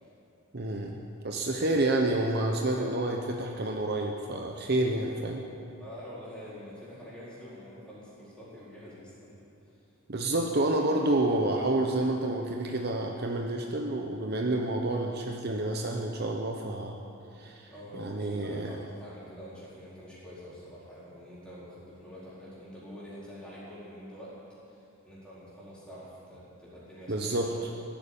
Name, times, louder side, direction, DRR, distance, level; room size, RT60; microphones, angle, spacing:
voice 1, 0.5-5.4 10.1-17.0 17.4-17.7 18.0-18.7 27.1-27.5, right 2 dB, 45° right, 2 dB, 0.9 m, -29 dB
voice 2, 2.7-3.4 5.8-9.5 17.7-24.4 24.7-27.8, equal, 5° left, -9 dB, 4.4 m, -46 dB
15.0 x 8.8 x 8.7 m, 2.8 s
head